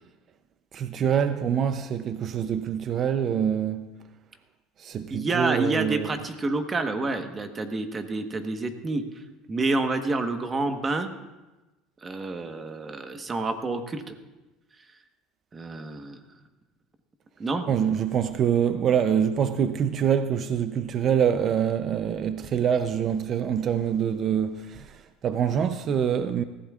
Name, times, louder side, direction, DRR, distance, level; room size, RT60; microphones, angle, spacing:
voice 1, 0.7-3.9 4.8-6.3 17.7-25.0 25.2-26.4, right 8 dB, 45° right, 0.6 m, -25 dB
voice 2, 5.1-9.2 9.5-11.1 12.0-14.2 15.5-16.2 17.4-17.7, right 3 dB, 25° right, 1.2 m, -28 dB
20.0 x 15.0 x 2.4 m
supercardioid pair, 110°, 0 cm